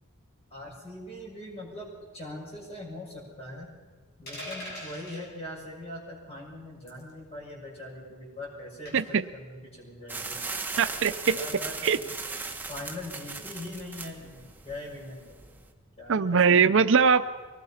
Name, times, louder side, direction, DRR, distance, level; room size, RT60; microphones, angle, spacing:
voice 1, 0.5-3.7 4.2-9.0 9.3-10.4 11.4-12.1 12.7-15.4 16.0-16.4 16.6-16.8, left 1 dB, 30° left, -2 dB, 6.7 m, -41 dB
sound 1, 4.3-5.2 6.9-7.1 8.9-9.2, equal, 50° left, 7.1 m, -40 dB
voice 2, 8.9-9.2 10.8-11.4 11.8-12.0 16.1-17.2, right 6 dB, 60° right, 12 dB, 0.6 m, -21 dB
sound 2, 10.1-15.7, right 4 dB, 10° right, 1.4 m, -38 dB
24.0 x 19.5 x 5.7 m, 1.4 s
head